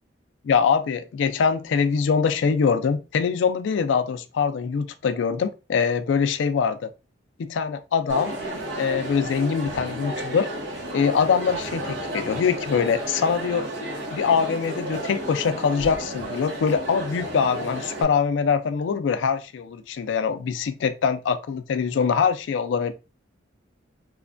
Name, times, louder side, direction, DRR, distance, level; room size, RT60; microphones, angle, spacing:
voice 1, 0.4-6.9 7.4-8.3 8.8-10.5 10.9-13.7 14.1-22.9, left 6 dB, 80° left, 0.3 m, -23 dB
Crowd, 8.1-18.0, right 1 dB, 80° right, 0.9 m, -32 dB
3.0 x 2.1 x 2.4 m
head